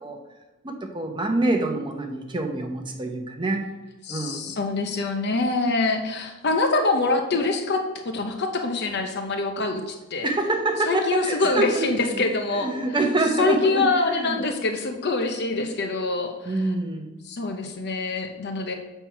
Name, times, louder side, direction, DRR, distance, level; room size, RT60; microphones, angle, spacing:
voice 1, 0.6-3.7 4.1-4.5 10.2-14.4 16.4-17.1, right 2 dB, 20° right, 3 dB, 0.9 m, -26 dB
voice 2, 4.0-10.3 10.9-12.7 13.4-16.5 17.3-18.7, left 3 dB, 50° left, 5 dB, 0.7 m, -25 dB
7.5 x 4.5 x 5.8 m, 1.1 s
head